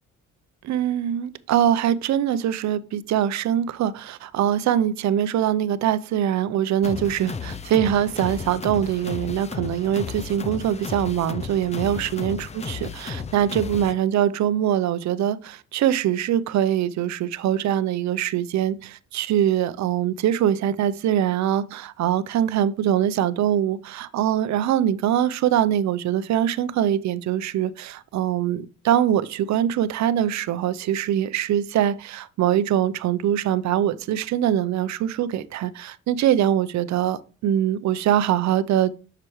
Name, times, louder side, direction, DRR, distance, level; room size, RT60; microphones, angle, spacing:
voice 1, 0.6-38.9, right 10 dB, 65° right, 0.5 m, -23 dB
sound 1, 6.8-13.9, left 5 dB, 25° left, 0.4 m, -34 dB
7.7 x 5.9 x 3.0 m
cardioid pair, 90°, 30 cm